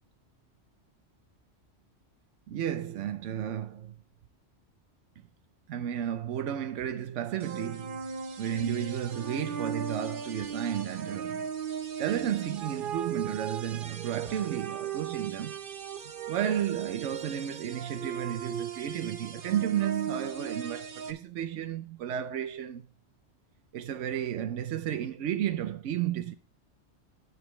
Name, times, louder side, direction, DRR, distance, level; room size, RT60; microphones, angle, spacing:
voice 1, 2.5-4.0 5.7-8.1 8.4-11.5 12.0-15.6 16.3-22.8 23.7-26.3, right 10 dB, 90° right, 1.0 m, -32 dB
sound 1, 7.4-21.1, right 7 dB, 50° right, 1.0 m, -37 dB
10.0 x 9.3 x 3.1 m
omnidirectional pair, 1.2 m